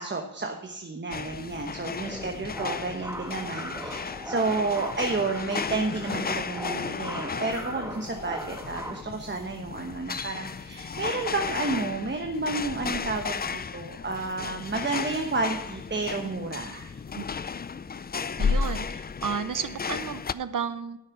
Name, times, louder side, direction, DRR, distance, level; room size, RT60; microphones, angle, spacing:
voice 1, 0.0-17.0, right 3 dB, 35° right, 3 dB, 1.1 m, -31 dB
sound 1, 1.1-20.3, left 5 dB, 30° left, 0.3 m, -34 dB
sound 2, 2.0-9.0, equal, 10° right, 1.5 m, -39 dB
voice 2, 18.4-21.0, right 7 dB, 70° right, 12 dB, 0.8 m, -32 dB
11.5 x 6.6 x 5.9 m, 0.85 s
wide cardioid pair, 100°, 34 cm